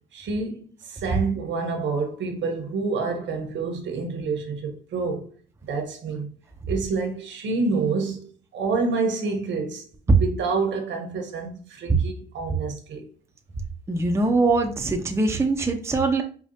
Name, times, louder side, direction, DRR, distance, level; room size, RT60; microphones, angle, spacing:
voice 1, 0.1-5.3 5.6-6.3 6.7-13.1, right 4 dB, 70° right, 1.0 m, -28 dB
voice 2, 13.9-16.2, right 3 dB, 15° right, 0.6 m, -22 dB
4.9 x 2.4 x 2.7 m
cardioid pair, 90°, 20 cm